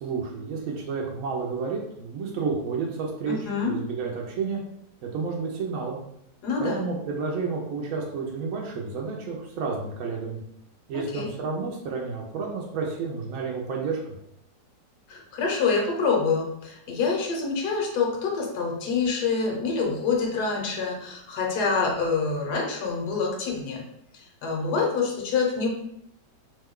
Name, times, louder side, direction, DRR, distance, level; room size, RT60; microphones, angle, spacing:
voice 1, 0.0-4.6 5.0-6.0 6.6-10.4 10.9-14.1, right 4 dB, 70° right, -1 dB, 0.8 m, -31 dB
voice 2, 3.3-3.8 6.4-6.8 11.1-11.3 15.1-23.8 24.1-25.7, left 4 dB, 70° left, 0 dB, 1.2 m, -26 dB
3.0 x 2.2 x 3.5 m, 0.76 s
omnidirectional pair, 1.9 m